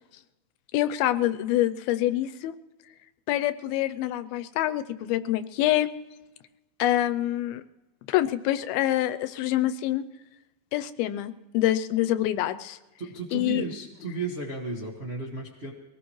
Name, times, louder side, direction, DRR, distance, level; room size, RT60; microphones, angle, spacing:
voice 1, 0.7-2.6 3.3-5.9 6.8-7.6 8.1-10.0 10.7-12.8 13.3-13.7, left 13 dB, 90° left, 11 dB, 2.5 m, -26 dB
voice 2, 13.0-15.7, right 3 dB, 60° right, -2 dB, 0.6 m, -34 dB
23.0 x 18.0 x 3.1 m, 1.1 s
omnidirectional pair, 4.2 m